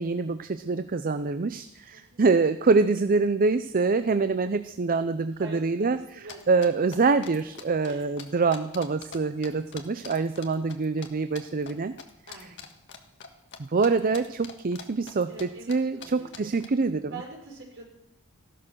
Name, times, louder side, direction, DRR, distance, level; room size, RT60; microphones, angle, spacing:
voice 1, 0.0-11.9 13.6-17.1, right 4 dB, 40° right, 11 dB, 0.5 m, -25 dB
voice 2, 1.9-2.2 5.4-6.4 7.8-8.0 12.3-12.7 15.3-16.5 17.1-17.9, right 3 dB, 55° right, -1 dB, 5.4 m, -44 dB
sound 1, 6.3-9.2 9.4-11.1 11.3-11.7 12.0-13.6 13.8-15.4 15.7-15.8 16.0-16.1 16.3-16.7, left 6 dB, 55° left, 1.6 m, -43 dB
15.5 x 12.0 x 6.3 m, 0.81 s
head